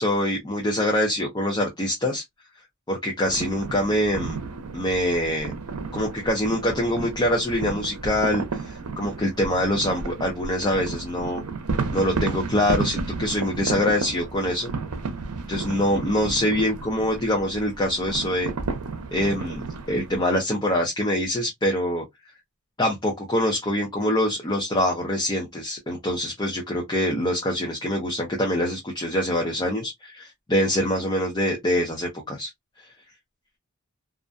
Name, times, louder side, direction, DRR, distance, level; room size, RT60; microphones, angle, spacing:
voice 1, 0.0-2.2 2.9-4.4 4.7-5.5 5.9-11.4 11.9-14.7 15.5-18.5 19.1-22.0 22.8-32.5, left 1 dB, 20° left, 0.6 m, -24 dB
sound 1, 3.2-20.2, right 4 dB, 85° right, 0.6 m, -32 dB
2.4 x 2.2 x 2.4 m
head